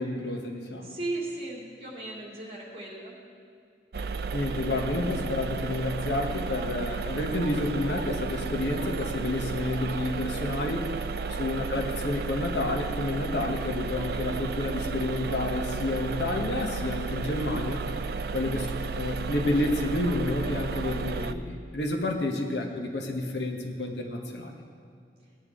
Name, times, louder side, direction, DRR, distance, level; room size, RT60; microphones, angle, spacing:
voice 1, 0.0-1.0 4.3-11.0 11.3-17.9 18.3-18.7 18.9-24.6, left 2 dB, 80° left, 2 dB, 1.2 m, -30 dB
voice 2, 0.8-3.1 11.3-11.4 18.3-18.6, right 2 dB, 35° right, -4 dB, 2.8 m, -37 dB
sound 1, 3.9-21.3, right 4 dB, 60° right, 0.4 m, -33 dB
17.5 x 10.0 x 3.8 m, 2.4 s
head